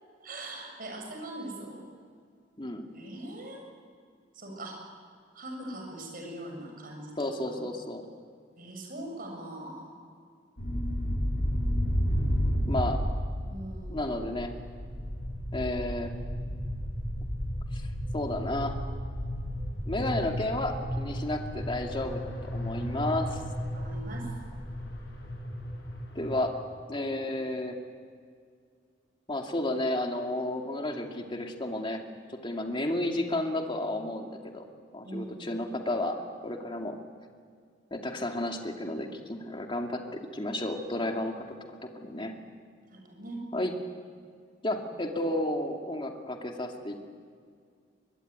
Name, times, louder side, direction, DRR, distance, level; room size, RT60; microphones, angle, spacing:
voice 1, 0.2-1.8 2.9-3.6 4.3-4.8 5.3-7.1 7.5-7.6 8.6-9.9 13.5-14.0 23.7-24.3 35.0-35.5 42.9-43.4, right 1 dB, 55° right, 2 dB, 7.0 m, -41 dB
voice 2, 7.2-8.0 12.7-13.0 13.9-14.5 15.5-16.1 17.7-17.8 18.1-18.8 19.9-23.4 26.1-26.5 26.9-27.7 29.3-32.0 32.3-34.6 34.9-37.0 37.9-41.4 41.8-42.3 43.5-43.7 44.6-47.0, left 1 dB, 30° left, 2 dB, 2.4 m, -32 dB
sound 1, 10.6-26.4, equal, 75° left, 6.5 m, -33 dB
24.5 x 21.5 x 9.6 m, 2.1 s
head